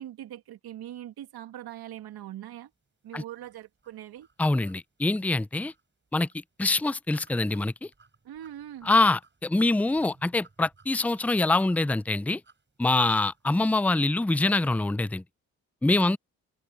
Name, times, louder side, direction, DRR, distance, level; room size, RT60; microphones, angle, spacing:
voice 1, 0.0-2.7 3.0-4.3 8.2-8.9 15.9-16.2, right 12 dB, 70° right, 2.4 m, -42 dB
sound 1, 3.4-13.5, right 4 dB, 30° right, 7.7 m, -61 dB
voice 2, 4.4-5.7 6.1-6.3 6.6-7.7 8.9-12.4 12.8-15.2 15.8-16.2, left 2 dB, 5° left, 0.5 m, -24 dB
supercardioid pair, 50°, 38 cm